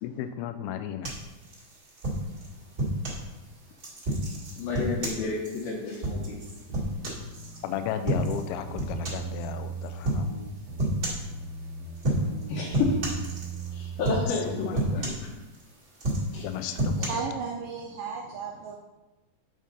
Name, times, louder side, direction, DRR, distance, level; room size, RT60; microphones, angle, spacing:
voice 1, 0.0-1.2 7.6-10.3 14.3-15.1 16.4-17.2, left 9 dB, 85° left, 9 dB, 2.5 m, -34 dB
sound 1, 1.0-3.2 3.8-7.6 8.0-8.5 8.8-9.3 10.0-10.3 10.8-11.3 12.0-12.4 12.7-13.7 14.0-14.4 14.7-15.6 15.9-17.1, right 1 dB, 35° right, 1.8 m, -30 dB
voice 2, 4.5-6.4 12.5-13.0 13.7-15.3 16.3-16.5, left 4 dB, 65° left, -5 dB, 2.4 m, -31 dB
sound 2, 6.7-7.7 8.1-9.9 10.2-11.9 12.2-14.6, right 5 dB, 55° right, 2.0 m, -38 dB
voice 3, 16.8-18.8, right 5 dB, 80° right, 0 dB, 1.9 m, -35 dB
8.6 x 5.0 x 4.1 m, 1.1 s
omnidirectional pair, 4.4 m